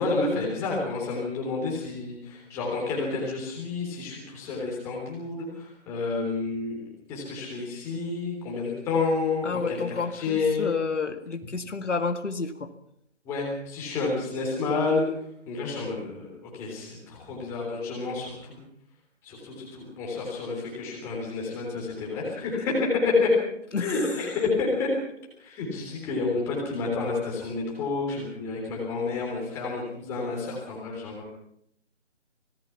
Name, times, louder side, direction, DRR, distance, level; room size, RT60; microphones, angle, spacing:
voice 1, 0.0-10.7 13.3-15.1 15.5-18.6 19.2-23.3 23.8-24.9 25.4-31.2, left 3 dB, 5° left, -3 dB, 3.5 m, -29 dB
voice 2, 9.4-12.7 23.7-24.3, left 4 dB, 75° left, 7 dB, 2.1 m, -30 dB
25.5 x 18.5 x 5.9 m, 0.73 s
figure-of-eight pair, 170°, 36 cm